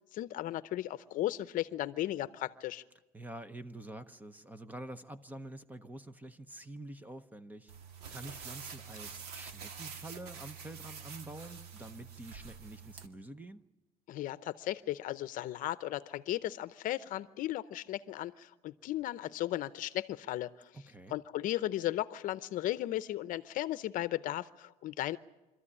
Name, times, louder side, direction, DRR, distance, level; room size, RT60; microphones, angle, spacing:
voice 1, 0.1-2.8 14.1-20.7 21.1-25.2, left 14 dB, 55° left, 15 dB, 0.7 m, -36 dB
voice 2, 3.1-7.7 8.1-13.6 20.7-21.1, right 1 dB, 10° right, 12 dB, 0.7 m, -47 dB
sound 1, 7.7-13.1, right 6 dB, 75° right, 1.9 m, -47 dB
sound 2, 8.2-13.4, right 2 dB, 55° right, 6.3 m, -68 dB
25.5 x 14.0 x 9.8 m, 1.1 s
cardioid pair, 150°, 17 cm